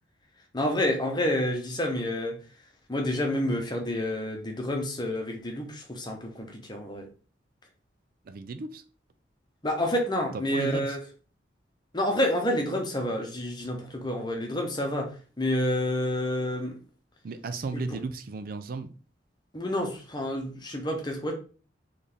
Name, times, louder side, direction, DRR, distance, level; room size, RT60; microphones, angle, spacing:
voice 1, 0.5-2.3 2.9-7.1 9.6-11.0 11.9-15.1 15.4-16.7 17.7-17.9 19.5-21.3, left 1 dB, 25° left, 0.9 m, -29 dB
voice 2, 8.2-8.8 10.5-11.0 17.2-18.9, right 4 dB, 50° right, 0.4 m, -34 dB
4.3 x 3.2 x 3.5 m
head